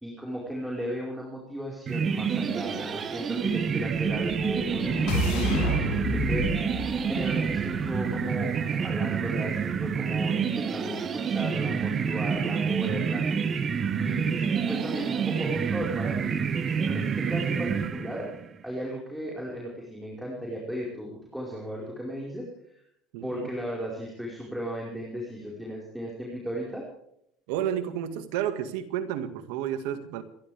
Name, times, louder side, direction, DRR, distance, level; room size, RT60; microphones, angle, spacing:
voice 1, 0.0-13.2 13.9-16.4 16.8-18.3 18.6-22.8 23.2-26.9, equal, 5° right, -4 dB, 4.9 m, -36 dB
sound 1, 1.9-18.4, right 6 dB, 35° right, 1.5 m, -28 dB
sound 2, 4.1-8.1, left 2 dB, 70° left, 4.8 m, -31 dB
voice 2, 23.1-23.5 27.5-30.2, right 10 dB, 80° right, 9 dB, 1.9 m, -31 dB
28.0 x 12.0 x 3.5 m, 0.74 s
supercardioid pair, 110°, 0 cm